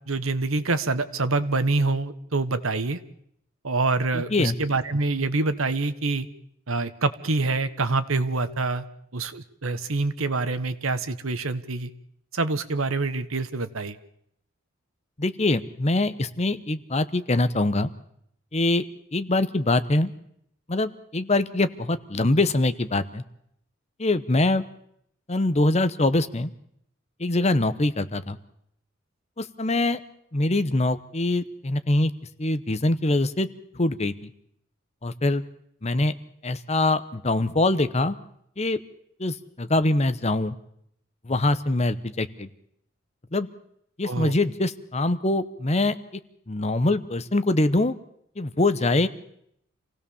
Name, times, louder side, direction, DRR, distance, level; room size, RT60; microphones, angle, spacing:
voice 1, 0.1-3.0 3.6-6.3 6.7-8.8 9.1-11.9 12.3-14.0 44.0-44.3, right 3 dB, 80° right, 12 dB, 1.4 m, -26 dB
voice 2, 4.1-4.6 15.2-17.9 18.5-18.8 19.1-20.1 20.7-23.2 24.0-24.6 25.3-26.5 27.2-28.4 29.4-30.0 30.3-32.1 32.4-33.5 33.8-34.3 35.0-35.4 35.8-36.1 36.4-38.2 38.6-38.8 39.2-40.5 41.3-42.5 43.3-43.5 44.0-46.0 46.5-47.9 48.4-49.1, left 2 dB, 30° left, 12 dB, 0.9 m, -23 dB
27.5 x 17.0 x 7.1 m, 0.72 s
head